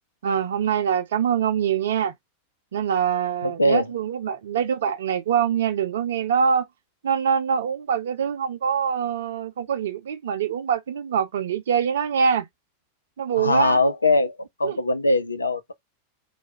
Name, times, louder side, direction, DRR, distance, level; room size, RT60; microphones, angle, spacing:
voice 1, 0.2-2.1 2.7-6.7 7.0-12.5 13.2-13.8 14.6-14.8, right 7 dB, 60° right, 0.7 m, -24 dB
voice 2, 3.4-3.9 13.3-15.7, left 2 dB, 80° left, 0.5 m, -22 dB
3.3 x 2.2 x 4.0 m
figure-of-eight pair, 90°, 0 cm